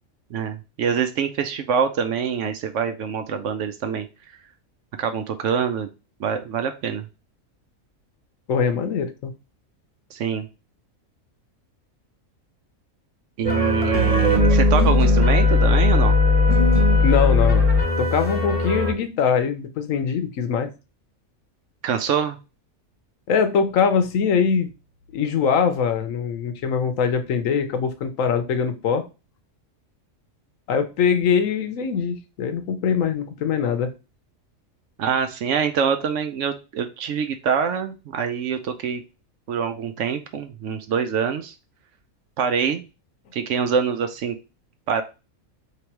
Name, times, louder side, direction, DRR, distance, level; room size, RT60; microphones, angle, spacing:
voice 1, 0.3-4.1 5.0-5.9 6.2-7.0 10.1-10.4 13.4-16.2 21.8-22.4 35.0-39.0 39.5-41.5 42.4-42.8 43.3-44.4 44.9-45.0, right 7 dB, 65° right, 0.8 m, -25 dB
voice 2, 8.5-9.3 17.0-17.7 18.0-20.7 23.3-24.7 25.1-29.1 30.7-33.9, left 6 dB, 70° left, 1.0 m, -22 dB
sound 1, 13.4-18.9, left 3 dB, 30° right, 1.0 m, -18 dB
3.3 x 3.0 x 4.4 m
omnidirectional pair, 1.5 m